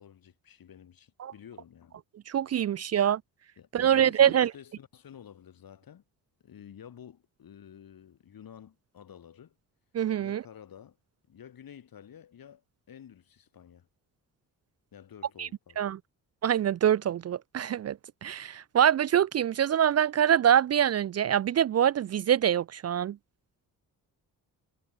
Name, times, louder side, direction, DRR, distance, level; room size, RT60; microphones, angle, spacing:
voice 1, 0.0-2.0 2.8-2.9 3.6-6.0 6.4-9.5 10.2-11.0 11.3-13.9 14.9-15.8, left 9 dB, 65° left, 5.1 m, -51 dB
voice 2, 2.3-3.2 3.7-4.5 9.9-10.4 15.4-15.5 15.8-16.0 16.4-23.2, right 9 dB, 45° right, 0.5 m, -25 dB
supercardioid pair, 60°, 37 cm